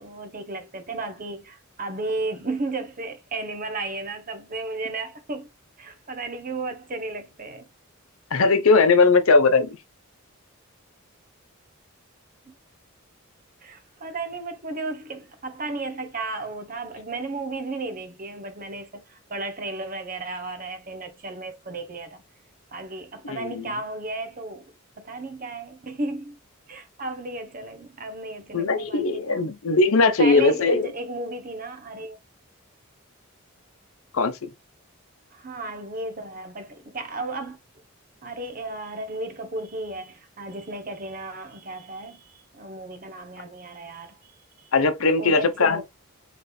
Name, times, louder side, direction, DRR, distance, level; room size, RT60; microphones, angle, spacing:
voice 1, 0.0-5.5 5.8-7.7 12.5-12.6 13.6-22.2 22.7-26.4 26.7-29.5 30.2-32.2 35.3-37.6 38.2-44.3 44.6-44.7 45.2-45.8, right 2 dB, 40° right, 0.8 m, -34 dB
voice 2, 8.3-9.7 23.2-23.7 28.5-30.9 34.1-34.5 44.7-45.8, left 3 dB, 80° left, 0.7 m, -19 dB
4.2 x 3.2 x 3.2 m
head